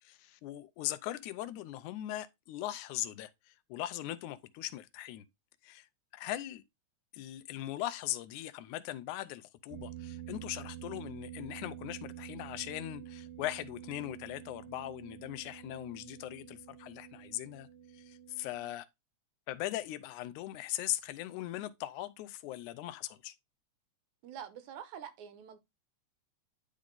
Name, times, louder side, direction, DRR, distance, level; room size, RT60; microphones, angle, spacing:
voice 1, 0.0-5.3 5.6-5.9 6.1-6.6 7.1-17.7 17.9-18.9 19.5-23.4, left 14 dB, 80° left, 2.1 m, -40 dB
sound 1, 9.7-18.7, right 12 dB, 65° right, 1.6 m, -48 dB
voice 2, 24.2-25.6, right 9 dB, 80° right, 2.3 m, -46 dB
10.5 x 3.7 x 3.7 m
omnidirectional pair, 3.5 m